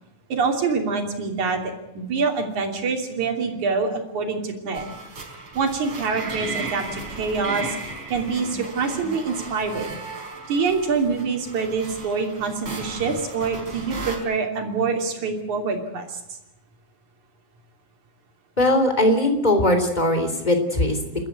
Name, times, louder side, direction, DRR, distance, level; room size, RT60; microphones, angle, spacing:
voice 1, 0.3-1.6 2.0-4.9 5.6-7.8 8.1-9.9 10.5-16.2, right 4 dB, 70° right, 4 dB, 4.4 m, -25 dB
sound 1, 4.7-14.2, right 3 dB, 40° right, 5.0 m, -35 dB
voice 2, 18.6-21.3, left 1 dB, 15° left, 7 dB, 3.4 m, -20 dB
29.5 x 13.5 x 9.4 m, 0.86 s
omnidirectional pair, 3.5 m